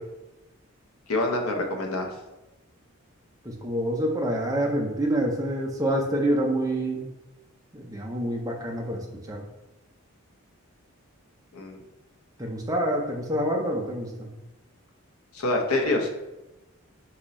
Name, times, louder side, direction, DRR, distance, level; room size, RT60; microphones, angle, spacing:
voice 1, 1.1-2.1 11.5-11.8 15.3-16.1, left 2 dB, 80° left, 3 dB, 0.7 m, -26 dB
voice 2, 3.4-7.1 7.7-9.4 12.4-14.3, right 1 dB, 15° right, 0 dB, 0.5 m, -27 dB
3.9 x 3.0 x 4.0 m, 0.98 s
head